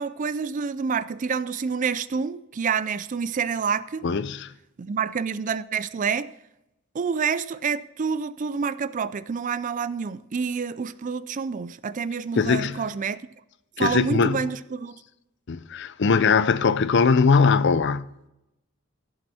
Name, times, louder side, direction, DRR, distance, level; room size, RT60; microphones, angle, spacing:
voice 1, 0.0-4.1 4.8-6.3 6.9-13.2 13.8-15.0, right 6 dB, 35° right, 0.4 m, -28 dB
voice 2, 4.0-4.5 12.3-12.8 13.8-14.5 15.5-18.1, left 5 dB, 55° left, 0.5 m, -21 dB
15.5 x 7.9 x 4.3 m
head